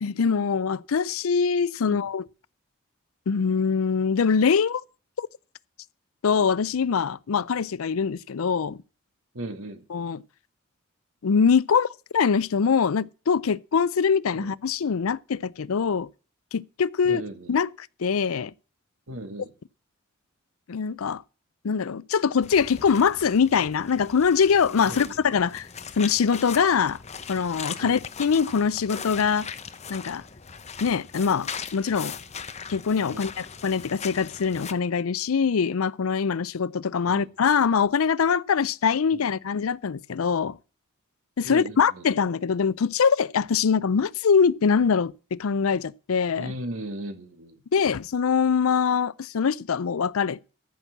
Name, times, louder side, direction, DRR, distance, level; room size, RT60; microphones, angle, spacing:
voice 1, 0.0-2.3 3.3-4.8 5.2-5.3 6.2-8.8 9.9-10.2 11.2-16.1 16.5-17.2 17.5-18.5 20.7-21.2 21.6-25.7 26.0-27.0 27.3-29.5 29.9-30.2 30.8-32.1 32.7-40.6 41.4-46.5 47.7-50.5, left 6 dB, 85° left, 0.5 m, -23 dB
voice 2, 9.3-9.8 14.4-14.5 17.0-17.5 19.1-19.5 24.8-25.1 27.8-28.0 33.1-33.2 37.1-37.3 39.2-39.3 41.4-42.1 46.4-47.6, right 1 dB, 85° right, 2.2 m, -37 dB
sound 1, 22.4-34.7, left 6 dB, 30° left, 0.9 m, -39 dB
14.5 x 6.1 x 7.2 m
head